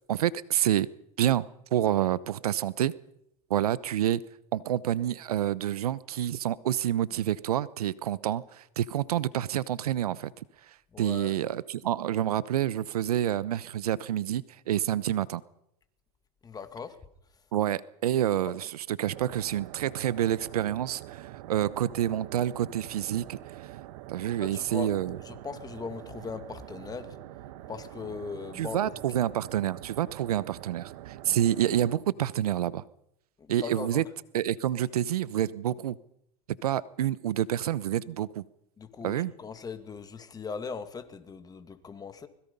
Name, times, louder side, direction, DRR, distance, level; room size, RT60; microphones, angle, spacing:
voice 1, 0.1-0.9 1.2-2.9 3.5-4.2 4.5-10.4 11.0-15.4 17.5-23.4 24.1-25.2 28.6-32.8 33.5-34.0 34.3-36.0 36.6-38.4 39.0-39.3, right 11 dB, 90° right, 20 dB, 0.9 m, -28 dB
voice 2, 10.9-11.3 16.4-17.0 24.2-24.9 25.2-28.9 31.3-31.4 33.4-34.1 38.8-42.3, left 5 dB, 20° left, 10 dB, 2.2 m, -40 dB
sound 1, 19.0-32.0, right 14 dB, 70° right, 1.3 m, -45 dB
24.5 x 21.5 x 5.5 m, 0.77 s
hypercardioid pair, 110°, 19 cm